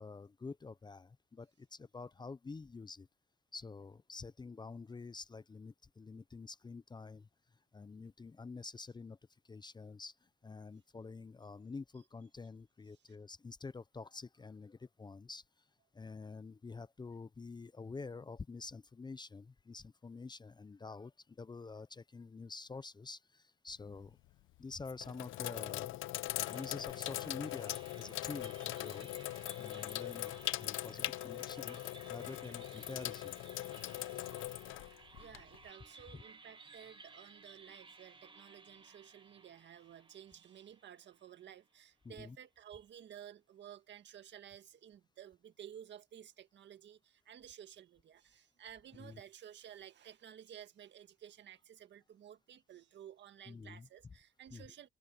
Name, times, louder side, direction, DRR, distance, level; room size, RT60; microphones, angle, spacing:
voice 1, 0.0-3.1 3.5-7.3 7.7-9.2 9.4-15.4 15.9-24.2 24.6-26.0 26.3-29.1 29.4-31.8 32.1-33.3 34.1-34.3 36.1-36.2 42.0-42.4 49.0-49.2 53.5-53.9 54.5-54.6, left 4 dB, 20° left, 0.6 m, -48 dB
Sink (filling or washing), 23.7-24.1 24.8-35.7, left 16 dB, 85° left, 0.6 m, -41 dB
sound 1, 26.4-41.7, right 3 dB, 25° right, 1.9 m, -58 dB
voice 2, 35.0-54.9, right 10 dB, 65° right, 1.8 m, -54 dB
open air
cardioid pair, 90°, 20 cm